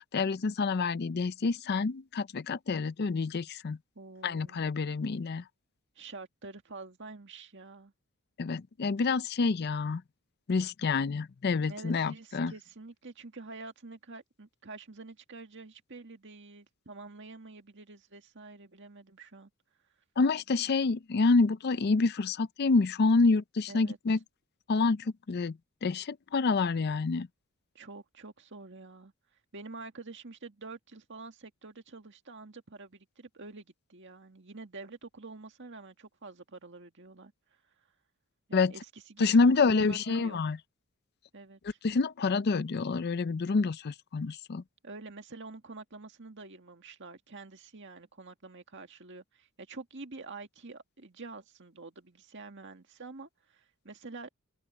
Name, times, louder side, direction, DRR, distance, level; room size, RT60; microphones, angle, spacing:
voice 1, 0.0-3.8 4.2-5.4 8.4-10.0 10.5-12.5 20.2-24.2 24.7-25.6 25.8-27.3 38.5-38.7 39.2-40.6 41.8-44.6, left 4 dB, 45° left, 0.5 m, -27 dB
voice 2, 4.0-4.7 6.0-7.9 11.7-19.5 23.7-24.2 27.7-29.1 29.5-37.3 38.5-40.4 41.3-41.8 44.8-54.3, right 3 dB, 55° right, 2.0 m, -47 dB
open air
head